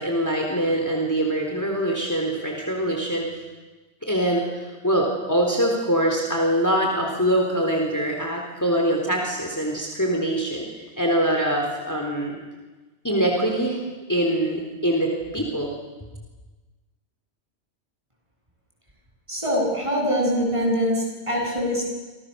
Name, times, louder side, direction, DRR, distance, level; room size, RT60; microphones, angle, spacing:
voice 1, 0.0-3.3 4.0-12.4 13.0-13.8 14.1-15.7, right 1 dB, 15° left, 1 dB, 3.8 m, -24 dB
voice 2, 19.3-21.8, equal, 25° right, -1 dB, 8.1 m, -23 dB
29.5 x 26.0 x 7.0 m, 1.2 s
omnidirectional pair, 1.2 m